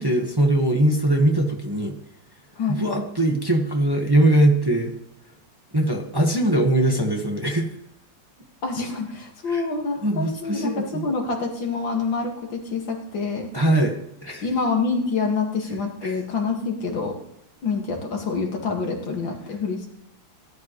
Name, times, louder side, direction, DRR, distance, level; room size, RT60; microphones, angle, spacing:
voice 1, 0.0-2.0 2.7-4.9 5.7-7.7 9.5-9.7 10.0-11.1 13.5-14.5 16.0-16.2, right 1 dB, 15° right, 1 dB, 1.4 m, -21 dB
voice 2, 8.6-13.5 14.4-17.2 17.6-19.9, left 4 dB, 80° left, 2 dB, 2.7 m, -26 dB
17.5 x 10.5 x 3.2 m, 0.76 s
omnidirectional pair, 2.0 m